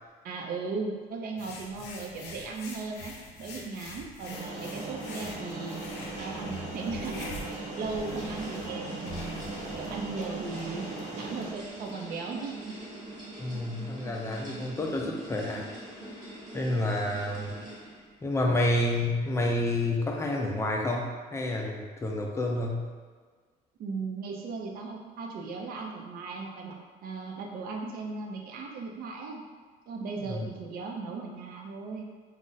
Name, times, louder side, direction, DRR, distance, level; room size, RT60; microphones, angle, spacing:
voice 1, 0.2-5.8 6.2-7.3 7.8-9.4 9.8-10.9 11.1-12.8 23.8-26.8 27.0-29.4 29.9-32.0, right 4 dB, 60° right, 1 dB, 0.5 m, -37 dB
sound 1, 1.4-11.9, left 3 dB, 90° left, 0.5 m, -45 dB
sound 2, 4.3-11.5, right 2 dB, 45° right, 0.9 m, -39 dB
sound 3, 6.1-18.2, right 1 dB, 25° right, 1.2 m, -45 dB
voice 2, 13.4-15.7 16.5-17.6 18.2-22.9 30.3-30.5, left 1 dB, 15° left, 0 dB, 0.4 m, -29 dB
2.4 x 2.0 x 3.9 m, 1.5 s
cardioid pair, 110°, 17 cm